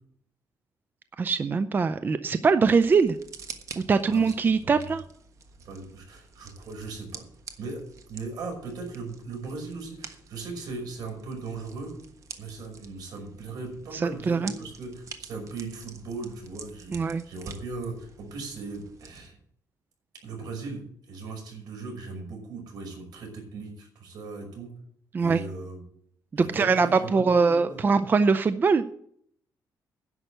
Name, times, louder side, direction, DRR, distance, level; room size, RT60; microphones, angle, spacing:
voice 1, 1.2-3.2 3.8-5.0 13.9-14.5 16.9-17.2 25.1-25.4 26.3-28.8, right 4 dB, 30° right, 12 dB, 0.5 m, -22 dB
sound 1, 2.7-19.3, right 5 dB, 50° right, 1.4 m, -47 dB
voice 2, 4.1-4.9 5.6-7.2 7.6-7.8 8.1-11.9 12.4-19.4 20.2-24.7 25.2-25.8 26.4-27.8, right 3 dB, 75° right, 1 dB, 5.6 m, -38 dB
11.0 x 6.6 x 7.9 m, 0.66 s
cardioid pair, 135°, 7 cm